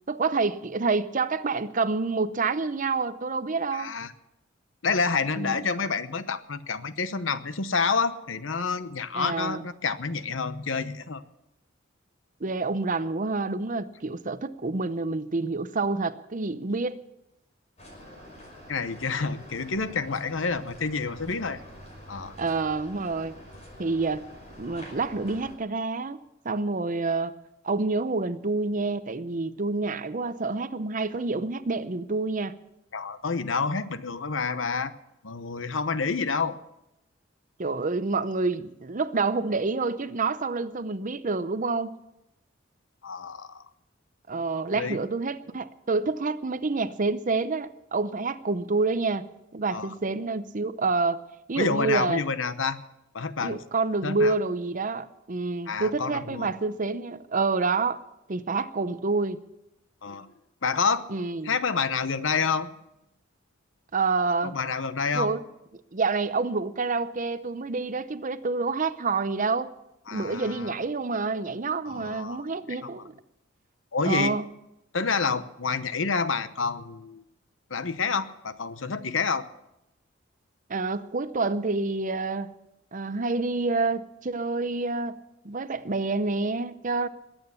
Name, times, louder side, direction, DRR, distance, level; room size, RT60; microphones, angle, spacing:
voice 1, 0.0-3.9 5.4-5.6 9.1-9.7 12.4-17.0 22.4-23.3 23.8-24.2 24.6-27.3 27.6-32.6 37.6-42.0 44.3-49.3 49.5-51.2 51.5-52.2 53.4-58.0 58.3-59.4 61.1-61.5 63.9-64.5 65.1-65.4 65.9-69.7 70.1-73.1 74.0-74.5 80.7-82.5 82.9-85.2 85.4-87.1, right 3 dB, 40° right, 0.7 m, -28 dB
voice 2, 3.7-4.1 4.8-11.2 18.7-21.6 22.1-22.3 32.9-34.9 35.2-36.6 43.0-43.6 44.7-45.0 49.7-49.9 51.6-52.8 53.1-53.6 54.0-54.3 55.7-56.5 60.0-60.3 60.6-61.1 61.4-62.7 64.4-65.3 70.1-70.8 71.8-73.0 73.9-74.4 74.9-77.2 77.7-79.4, left 5 dB, 75° left, 0.9 m, -28 dB
sound 1, 17.8-25.6, equal, 35° left, 5.6 m, -46 dB
21.5 x 8.9 x 7.0 m
head